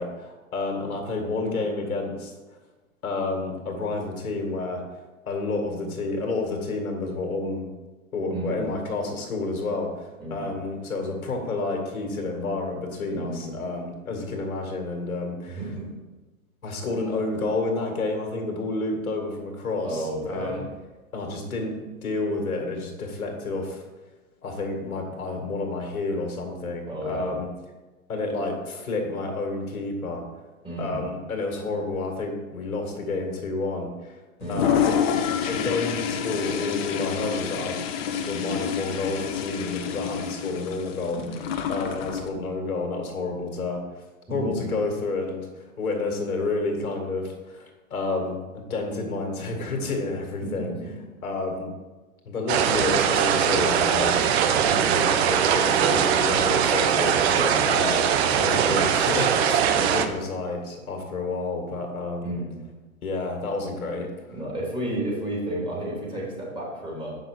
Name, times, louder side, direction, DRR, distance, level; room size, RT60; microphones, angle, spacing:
voice 1, 0.0-2.3 3.0-4.8 5.3-7.7 8.1-15.6 16.6-20.6 21.1-23.8 24.4-27.5 28.1-30.2 30.8-34.2 34.5-35.0 35.5-41.2 41.7-43.8 44.3-50.7 51.2-51.7 52.3-54.3 54.7-57.3 57.6-58.1 58.4-62.3 63.0-64.1, left 3 dB, 75° left, 2 dB, 1.9 m, -30 dB
voice 2, 8.3-8.6 10.2-10.5 13.1-13.5 15.5-15.9 19.8-20.6 26.9-27.3 30.6-31.0 34.4-34.7 41.1-41.5 44.3-44.5 50.4-50.7 54.5-54.8 57.2-57.7 62.2-62.5 64.3-67.1, right 1 dB, 10° right, -5 dB, 3.0 m, -32 dB
Toilet flush, 34.4-42.3, left 8 dB, 45° left, 0.8 m, -28 dB
sound 1, 52.5-60.1, right 8 dB, 45° right, 0.7 m, -21 dB
7.6 x 5.7 x 4.8 m, 1.2 s
hypercardioid pair, 115°, 43 cm